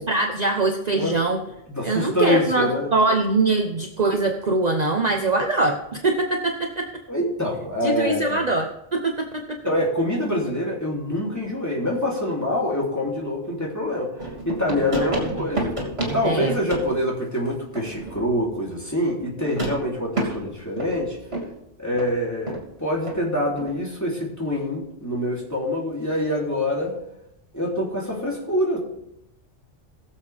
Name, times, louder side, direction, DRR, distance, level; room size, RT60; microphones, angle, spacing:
voice 1, 0.1-1.4 1.8-6.9 7.8-9.6 14.8-15.1 15.4-15.5 16.2-16.6, right 3 dB, 35° right, 3 dB, 1.0 m, -23 dB
voice 2, 1.7-2.9 7.1-8.4 9.6-14.2 14.5-15.7 16.1-21.2 21.8-27.0 27.5-28.8, left 1 dB, 15° left, -4 dB, 3.4 m, -25 dB
sound 1, 14.2-17.0 17.8-18.4 19.4-21.6 21.9-22.1 22.5-22.7 23.0-23.2 23.6-23.8, right 2 dB, 55° right, 3.2 m, -30 dB
20.5 x 7.4 x 3.5 m, 0.83 s
omnidirectional pair, 1.3 m